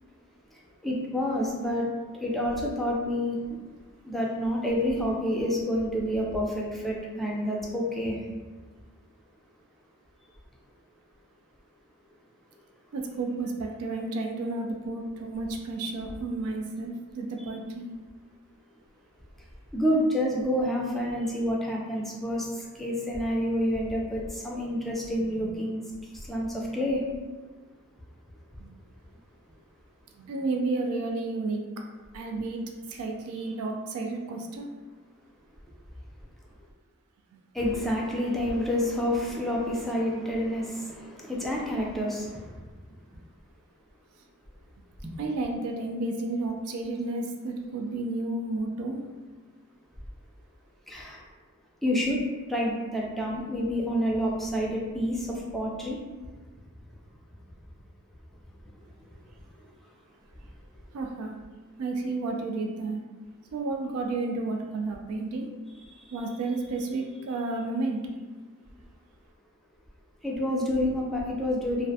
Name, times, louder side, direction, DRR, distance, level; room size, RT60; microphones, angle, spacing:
voice 1, 0.5-1.9 2.1-3.6 4.0-8.2 19.7-27.0 33.4-33.5 37.5-42.6 50.9-51.2 51.8-52.2 52.5-56.0 58.8-58.9 59.6-59.7 65.9-66.2 70.2-71.9, equal, ahead, -3 dB, 0.3 m, -29 dB
voice 2, 12.9-17.9 28.6-28.8 30.2-31.6 32.1-32.6 32.9-34.7 45.2-49.0 60.9-61.3 61.8-63.0 63.5-65.5 66.1-68.0, right 3 dB, 80° right, 2 dB, 0.3 m, -31 dB
2.4 x 2.1 x 2.6 m, 1.3 s
head